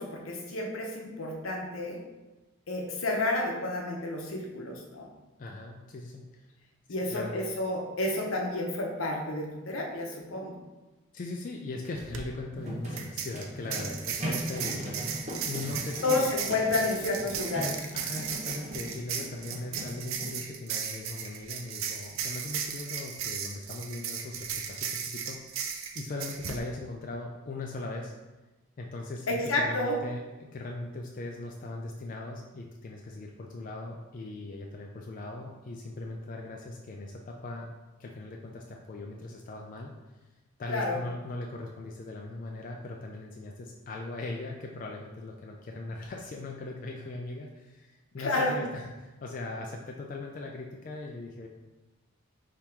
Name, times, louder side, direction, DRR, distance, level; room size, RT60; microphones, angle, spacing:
voice 1, 0.0-2.0 2.7-5.1 6.9-10.6 16.0-17.8 29.3-30.0 40.7-41.0 48.2-48.5, left 2 dB, 80° left, 0 dB, 0.8 m, -30 dB
voice 2, 5.4-6.5 7.1-7.3 11.1-15.0 15.4-16.6 17.9-28.1 28.8-37.7 38.0-39.9 40.6-51.5, left 2 dB, 40° left, 0 dB, 0.3 m, -39 dB
sound 1, 12.1-12.2 13.0-26.6, right 7 dB, 75° right, 0.4 m, -36 dB
sound 2, 12.5-20.3, equal, 35° right, 0.8 m, -39 dB
3.6 x 2.9 x 4.4 m, 1.1 s
head